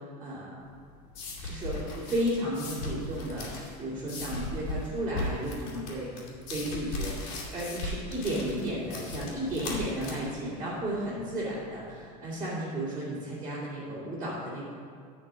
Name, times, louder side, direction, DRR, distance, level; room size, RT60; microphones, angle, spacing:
voice 1, 0.2-0.6 1.4-6.2 6.5-14.7, right 1 dB, 20° right, -11 dB, 2.6 m, -33 dB
sound 1, 0.6-12.0, left 2 dB, 70° left, 2.3 m, -38 dB
8.6 x 4.5 x 7.4 m, 2.2 s
supercardioid pair, 115°, 20 cm